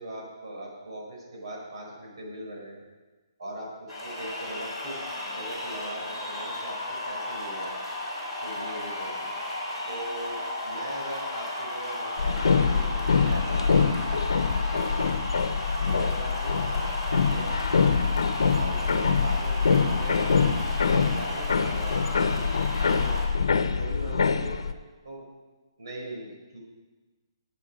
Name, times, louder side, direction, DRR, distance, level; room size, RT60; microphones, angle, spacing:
voice 1, 0.0-2.8 3.4-7.8 8.4-9.3 9.9-13.8 14.4-15.2 15.8-17.6 18.5-20.5 20.9-23.2 23.7-24.6 25.0-25.2 25.8-26.6, right 1 dB, 65° right, -2 dB, 5.0 m, -40 dB
sound 1, 3.9-23.2, left 1 dB, 10° right, 3.0 m, -34 dB
sound 2, 12.2-24.7, left 5 dB, 85° left, 0.8 m, -25 dB
16.0 x 8.4 x 5.2 m, 1.3 s
hypercardioid pair, 175°, 3 cm